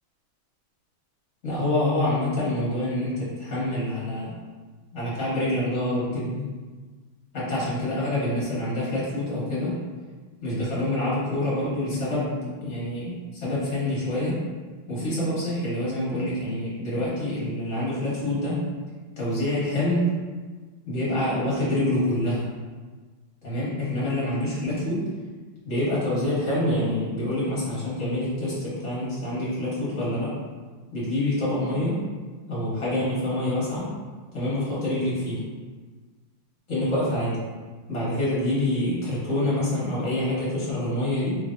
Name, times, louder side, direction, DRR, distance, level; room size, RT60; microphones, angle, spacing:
voice 1, 1.4-4.4 4.9-6.5 7.3-9.7 10.4-14.4 14.9-18.6 19.2-20.0 20.9-22.5 23.4-25.0 25.6-30.3 30.9-32.0 32.5-33.9 34.3-35.4 36.7-37.4 37.9-41.3, left 1 dB, 40° left, -9 dB, 1.4 m, -26 dB
3.6 x 3.3 x 2.5 m, 1.4 s
omnidirectional pair, 2.4 m